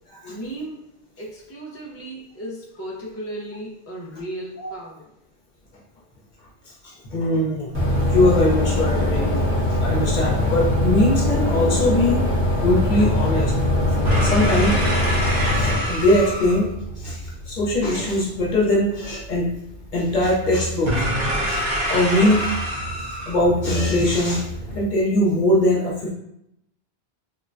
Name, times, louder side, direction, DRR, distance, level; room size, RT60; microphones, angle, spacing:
voice 1, 0.3-0.8 1.2-5.1, right 1 dB, 20° left, -4 dB, 0.4 m, -35 dB
voice 2, 6.7-9.3 9.7-12.2 12.6-13.6 14.2-14.8 15.6-16.7 17.0-19.5 19.9-21.1 21.5-21.6 21.9-22.4 23.3-24.5 24.7-26.1, left 1 dB, 50° left, -4 dB, 0.8 m, -21 dB
sound 1, 7.7-15.7, left 1 dB, 15° right, 0.8 m, -21 dB
sound 2, 8.7-24.8, equal, 45° right, 0.8 m, -28 dB
3.8 x 2.2 x 2.5 m, 0.79 s
omnidirectional pair, 1.1 m